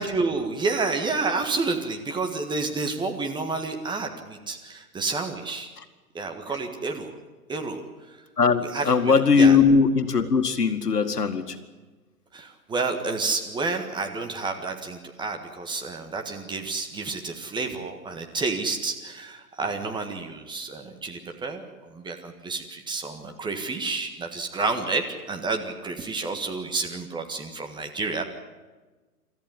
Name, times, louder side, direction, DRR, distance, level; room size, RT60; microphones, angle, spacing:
voice 1, 0.0-5.7 6.1-7.1 7.5-7.8 8.1-8.2 8.6-9.6 12.3-28.2, right 3 dB, 10° right, 4 dB, 1.7 m, -30 dB
voice 2, 8.4-11.6, left 5 dB, 80° left, 8 dB, 2.2 m, -20 dB
26.5 x 14.0 x 9.8 m, 1.3 s
figure-of-eight pair, 125°, 47 cm